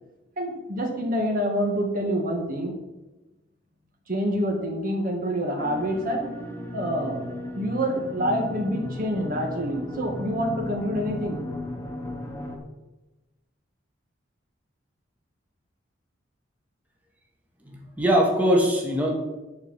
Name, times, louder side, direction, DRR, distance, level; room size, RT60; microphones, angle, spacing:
voice 1, 0.4-2.7 4.1-6.3 6.7-7.2 7.5-11.4, equal, 45° right, 1 dB, 1.7 m, -27 dB
sound 1, 5.6-12.6, left 1 dB, 15° left, 1.3 m, -35 dB
voice 2, 17.6-19.1, equal, 10° right, -1 dB, 1.5 m, -22 dB
10.5 x 4.6 x 7.4 m, 1.1 s
head